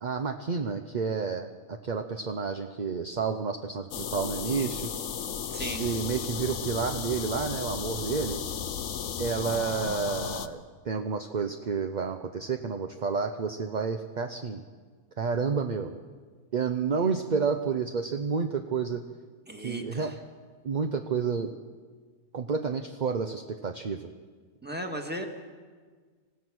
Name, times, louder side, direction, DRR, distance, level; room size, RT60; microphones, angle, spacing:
voice 1, 0.0-4.9 5.8-8.4 9.2-14.6 15.2-16.0 16.5-19.0 19.6-20.1 20.6-21.5 22.3-24.1, right 5 dB, 40° right, 6 dB, 0.7 m, -30 dB
sound 1, 3.9-10.5, left 7 dB, 60° left, 1.1 m, -34 dB
voice 2, 5.5-5.9 19.5-20.1 24.6-25.3, equal, 5° right, 3 dB, 1.7 m, -36 dB
26.5 x 16.5 x 6.2 m, 1.5 s
omnidirectional pair, 1.6 m